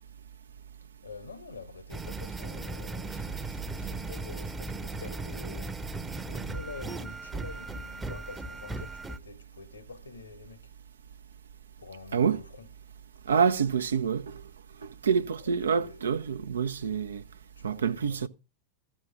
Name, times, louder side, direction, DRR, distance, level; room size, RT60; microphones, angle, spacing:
voice 1, 1.0-10.7 11.8-12.7 13.3-13.6 15.4-16.1 17.6-18.3, left 4 dB, 75° left, 1.5 m, -47 dB
sound 1, 1.9-9.2, right 3 dB, 10° right, 0.9 m, -37 dB
voice 2, 13.3-14.4 14.8-17.2 17.6-18.3, right 6 dB, 70° right, 0.8 m, -27 dB
14.5 x 7.4 x 6.0 m
figure-of-eight pair, 90°, 0 cm